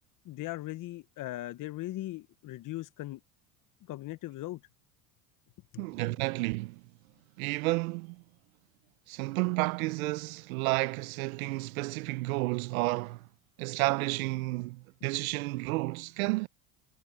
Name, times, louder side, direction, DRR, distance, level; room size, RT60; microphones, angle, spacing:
voice 1, 0.2-3.2 3.9-4.6 5.7-5.9, left 16 dB, 50° left, 1.1 m, -39 dB
voice 2, 5.8-6.8 7.4-8.2 9.1-13.2 13.6-16.5, right 22 dB, 80° right, 0.8 m, -31 dB
supercardioid pair, 95°, 42 cm